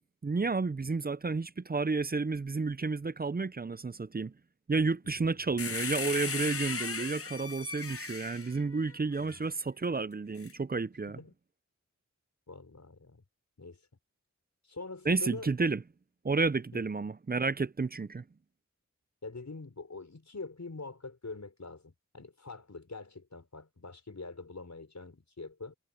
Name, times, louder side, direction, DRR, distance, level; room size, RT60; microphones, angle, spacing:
voice 1, 0.2-4.3 4.7-11.2 15.1-15.8 16.2-18.2, right 4 dB, 30° right, 0.5 m, -31 dB
voice 2, 5.0-5.5 9.2-9.5 11.1-11.3 12.5-13.2 13.6-13.8 14.6-15.5 16.7-16.9 19.2-25.7, left 3 dB, 65° left, 6.1 m, -45 dB
sound 1, 5.6-9.4 10.4-10.5, left 5 dB, 50° left, 0.7 m, -37 dB
wide cardioid pair, 70°, 30 cm